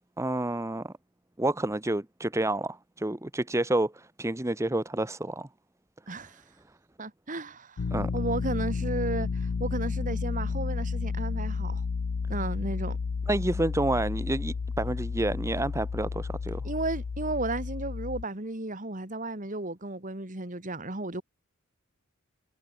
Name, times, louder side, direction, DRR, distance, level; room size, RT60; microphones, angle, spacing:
voice 1, 0.2-0.9 1.4-5.5 7.9-8.1 13.3-16.6, right 1 dB, 15° right, 0.8 m, -29 dB
voice 2, 6.1-6.4 7.0-7.8 8.1-11.8 12.3-13.0 16.6-21.2, right 2 dB, 35° right, 2.3 m, -34 dB
sound 1, 7.8-18.2, left 5 dB, 60° left, 0.5 m, -32 dB
head